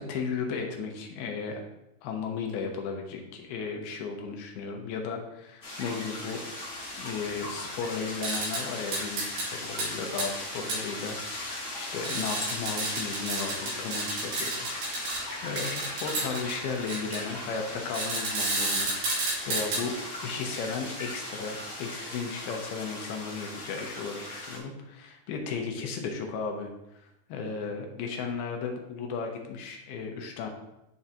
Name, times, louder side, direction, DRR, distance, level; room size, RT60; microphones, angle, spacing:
voice 1, 0.0-1.6 2.0-6.4 7.0-14.7 14.9-15.1 15.4-26.7 27.3-30.5, left 5 dB, 80° left, 2 dB, 2.6 m, -35 dB
sound 1, 5.6-24.6, left 1 dB, 50° left, 1.2 m, -38 dB
sound 2, 8.2-8.6 8.9-9.5 9.8-9.9 10.2-10.3 10.7-10.8 12.0-15.2 15.6-16.5 16.9-17.2 17.9-19.8, right 2 dB, 85° right, 4.7 m, -30 dB
10.5 x 3.7 x 2.8 m, 0.88 s
omnidirectional pair, 4.6 m